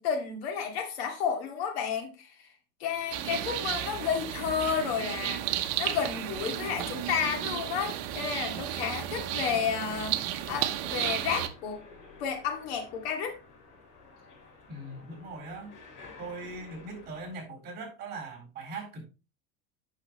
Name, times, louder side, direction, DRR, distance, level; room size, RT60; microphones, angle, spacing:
voice 1, 0.0-2.3 2.8-5.4 5.8-11.8 12.2-13.4, left 7 dB, 85° left, 2.4 m, -31 dB
sound 1, 2.9-17.4, left 3 dB, 55° left, 3.9 m, -52 dB
sound 2, 3.1-11.5, right 12 dB, 55° right, 0.9 m, -33 dB
voice 2, 14.7-15.7 16.2-19.0, right 3 dB, 35° right, 4.2 m, -40 dB
8.8 x 6.5 x 3.1 m
supercardioid pair, 150°, 30 cm